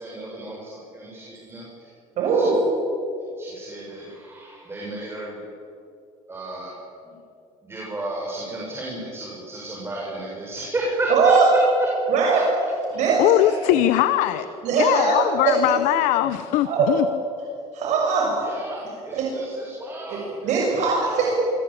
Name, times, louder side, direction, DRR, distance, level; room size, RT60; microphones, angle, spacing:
voice 1, 0.0-2.6 3.4-5.4 6.3-6.7 7.0-7.1 7.6-11.9 13.4-13.7 14.2-15.5 18.4-21.3, right 1 dB, 20° right, -3 dB, 7.5 m, -31 dB
voice 2, 2.2-2.5 11.1-11.5 12.1-12.4 12.9-13.2 14.6-15.6 16.6-16.9 17.7-18.4 19.1-19.3 20.1-20.2 20.4-21.3, right 5 dB, 65° right, -2 dB, 7.0 m, -20 dB
voice 3, 13.2-14.5 14.8-17.1, left 14 dB, 80° left, 12 dB, 1.0 m, -20 dB
26.5 x 23.0 x 8.9 m, 2.6 s
cardioid pair, 115°, 13 cm